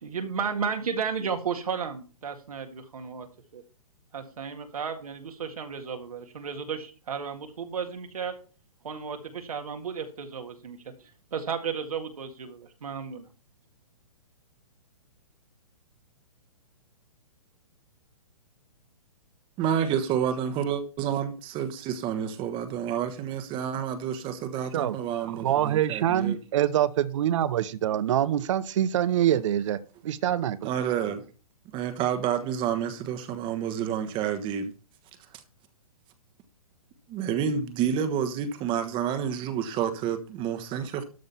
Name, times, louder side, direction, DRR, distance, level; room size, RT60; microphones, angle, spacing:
voice 1, 0.0-3.3 3.5-3.6 4.1-8.3 8.8-10.8 11.3-13.3, right 6 dB, 75° right, 1.9 m, -33 dB
voice 2, 19.6-26.4 30.6-31.2 31.7-34.7 37.1-41.0, right 8 dB, 25° right, 1.3 m, -29 dB
voice 3, 25.3-29.8 30.0-30.7, right 11 dB, 55° right, 0.8 m, -25 dB
13.0 x 5.3 x 5.7 m
hypercardioid pair, 130°, 19 cm